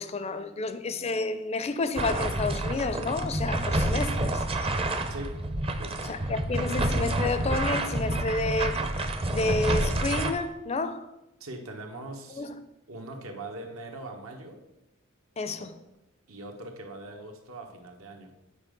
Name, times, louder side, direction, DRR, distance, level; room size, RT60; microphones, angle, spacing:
voice 1, 0.0-4.5 6.1-8.8 9.3-11.1 12.4-12.6 15.4-15.7, left 3 dB, 30° left, 0.4 m, -30 dB
sound 1, 2.0-10.3, right 1 dB, 25° right, 0.6 m, -28 dB
voice 2, 5.8-6.1 11.4-12.5 12.9-14.6 15.6-15.7 16.3-18.3, right 2 dB, 80° right, 1.4 m, -41 dB
8.4 x 5.1 x 5.2 m
head